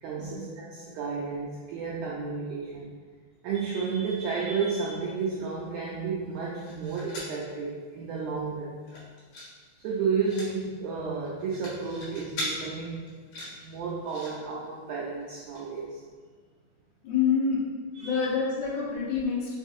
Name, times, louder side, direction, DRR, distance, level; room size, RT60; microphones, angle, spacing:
voice 1, 0.0-2.9 3.4-8.7 9.8-13.0 13.5-16.0 17.9-18.3, right 5 dB, 90° right, -5 dB, 1.7 m, -32 dB
sound 1, 6.3-7.4 7.8-7.9 8.2-8.5 8.8-9.5 9.8-10.5 11.2-12.5 13.1-14.3 15.2-15.3 15.6-15.7, left 1 dB, 70° left, 2.7 m, -39 dB
voice 2, 17.0-17.7 18.0-19.5, left 6 dB, 85° left, -5 dB, 2.7 m, -27 dB
5.9 x 2.6 x 2.4 m, 1.5 s
omnidirectional pair, 3.9 m